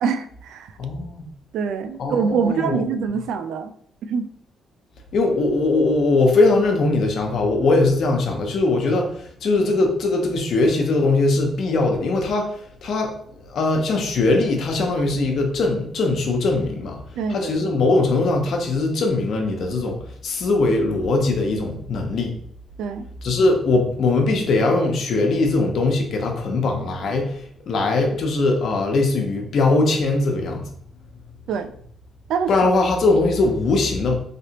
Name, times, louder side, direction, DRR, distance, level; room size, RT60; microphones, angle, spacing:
voice 1, 0.0-0.7 1.5-3.7 4.1-4.3 17.2-17.5 22.8-23.1 31.5-31.7 32.3-32.5, right 6 dB, 80° right, 9 dB, 0.3 m, -24 dB
voice 2, 0.8-1.3 2.0-2.8 5.1-17.0 17.3-22.4 23.2-30.6 32.5-34.1, left 2 dB, 65° left, 2 dB, 0.8 m, -21 dB
3.3 x 2.9 x 2.8 m, 0.64 s
cardioid pair, 90°, 0 cm